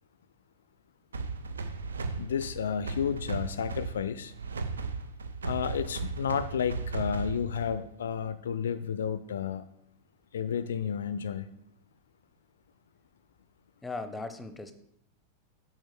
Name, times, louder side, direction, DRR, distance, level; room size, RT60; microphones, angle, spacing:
sound 1, 1.1-7.9, right 4 dB, 70° right, 0.6 m, -36 dB
voice 1, 2.2-4.3 5.4-9.6 10.3-11.5, left 7 dB, 65° left, 14 dB, 0.3 m, -31 dB
voice 2, 13.8-14.7, left 3 dB, 10° left, 10 dB, 0.7 m, -38 dB
7.6 x 4.6 x 4.4 m, 0.76 s
figure-of-eight pair, 90°, 0 cm